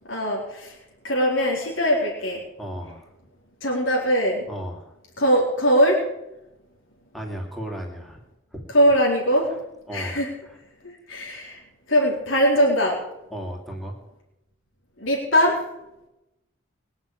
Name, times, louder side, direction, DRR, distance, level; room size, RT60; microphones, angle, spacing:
voice 1, 0.1-0.8 1.0-2.4 3.6-4.5 5.2-6.0 8.7-9.5 9.9-10.3 11.1-11.6 11.9-13.0 15.0-15.6, equal, 75° left, -3 dB, 4.0 m, -21 dB
voice 2, 2.6-3.1 4.5-4.9 7.1-8.2 8.5-8.7 9.9-10.6 13.3-14.0, equal, ahead, -1 dB, 2.7 m, -35 dB
22.0 x 7.3 x 8.8 m, 0.93 s
head